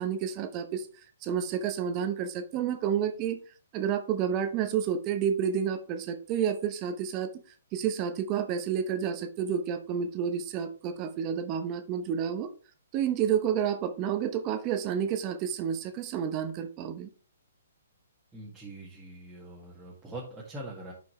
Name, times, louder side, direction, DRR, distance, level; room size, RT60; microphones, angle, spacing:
voice 1, 0.0-3.4 3.7-7.3 7.7-12.5 12.9-17.1, right 8 dB, 30° right, 9 dB, 0.9 m, -30 dB
voice 2, 18.3-20.9, right 1 dB, 5° right, -7 dB, 1.9 m, -43 dB
10.5 x 5.2 x 3.1 m, 0.38 s
figure-of-eight pair, 125°, 0 cm